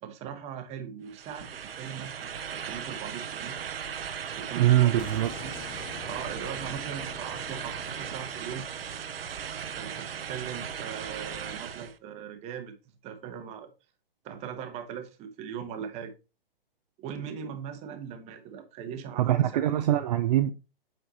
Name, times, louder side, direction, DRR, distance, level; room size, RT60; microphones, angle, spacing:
voice 1, 0.0-3.6 4.3-5.0 5.4-5.5 6.0-8.7 9.7-12.8 13.0-13.7 14.2-16.1 17.0-19.6, right 8 dB, 20° right, 1.1 m, -39 dB
sound 1, 1.1-12.0, right 8 dB, 80° right, 0.8 m, -37 dB
voice 2, 4.6-5.3 19.2-20.5, right 13 dB, 45° right, 0.5 m, -23 dB
sound 2, 5.0-10.8, left 6 dB, 15° left, 0.6 m, -47 dB
8.0 x 5.8 x 2.8 m
hypercardioid pair, 135°, 29 cm